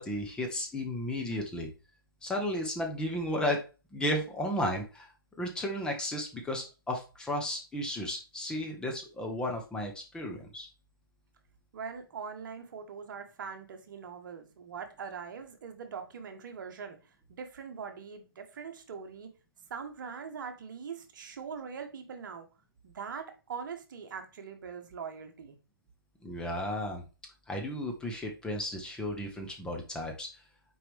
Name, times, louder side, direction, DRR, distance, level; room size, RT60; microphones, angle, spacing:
voice 1, 0.0-1.7 2.2-3.6 3.9-5.1 5.4-10.7 26.2-27.0 27.5-30.3, left 1 dB, 5° left, 0.9 m, -34 dB
voice 2, 11.7-17.0 17.3-19.3 19.7-22.5 22.8-25.6, right 6 dB, 55° right, 1.3 m, -42 dB
5.9 x 4.8 x 3.5 m
hypercardioid pair, 140°, 13 cm